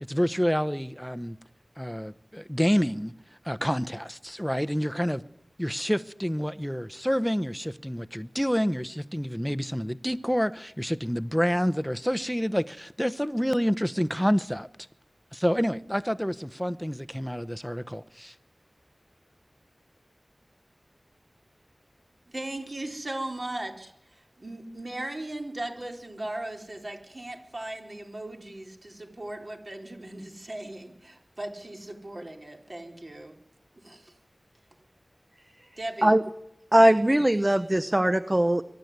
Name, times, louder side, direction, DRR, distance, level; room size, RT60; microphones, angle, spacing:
voice 1, 0.1-1.4 1.8-3.1 3.4-5.2 5.6-14.7 15.3-18.3, equal, ahead, 0.9 m, -28 dB
voice 2, 22.3-33.3 33.8-34.1 35.8-36.1, right 1 dB, 50° right, 4.0 m, -38 dB
voice 3, 36.7-38.6, right 1 dB, 25° right, 0.9 m, -20 dB
23.0 x 12.0 x 9.5 m
wide cardioid pair, 45°, 0 cm